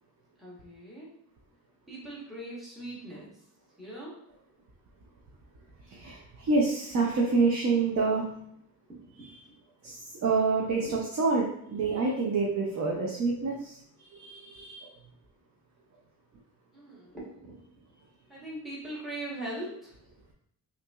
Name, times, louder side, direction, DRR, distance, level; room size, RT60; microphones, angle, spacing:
voice 1, 0.4-1.1 1.9-3.4 3.8-4.1 9.3-9.4 9.8-10.0 10.8-11.3 11.6-12.0 16.7-17.7 18.3-20.0, right 1 dB, ahead, -8 dB, 1.0 m, -41 dB
voice 2, 5.9-8.3 9.8-13.8 14.1-14.9, right 4 dB, 50° right, -2 dB, 0.6 m, -27 dB
5.7 x 2.6 x 2.3 m, 0.74 s
wide cardioid pair, 180°, 38 cm